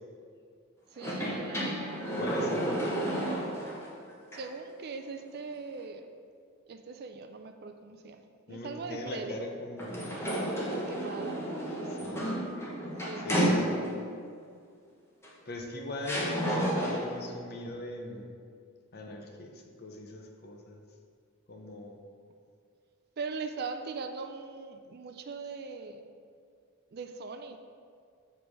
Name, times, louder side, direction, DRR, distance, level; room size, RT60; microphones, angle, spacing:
voice 1, 0.9-1.7 4.3-6.0 6.7-9.4 10.6-11.4 13.0-13.3 23.2-26.0 26.9-27.6, right 4 dB, 45° right, 7 dB, 0.4 m, -40 dB
sound 1, 1.0-3.9 4.3-4.4 9.8-14.1 15.2-15.3 16.0-17.2, equal, 10° left, 1.1 m, -31 dB
voice 2, 2.2-3.0 8.5-10.0 12.0-12.3 13.2-13.6 15.5-18.3 18.9-19.5 19.8-20.8 21.5-22.0, left 1 dB, 45° left, 2 dB, 0.8 m, -40 dB
7.0 x 3.4 x 6.2 m, 2.2 s
head